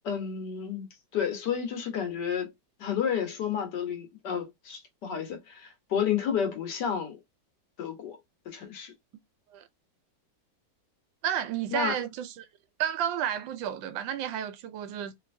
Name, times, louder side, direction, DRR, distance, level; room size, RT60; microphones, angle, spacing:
voice 1, 0.0-2.5 2.8-7.2 7.8-8.2 8.4-8.9 11.7-12.0, left 8 dB, 65° left, 1.5 m, -31 dB
voice 2, 11.2-12.5 12.8-15.1, right 9 dB, 80° right, 1.3 m, -31 dB
3.2 x 2.8 x 2.5 m
omnidirectional pair, 2.0 m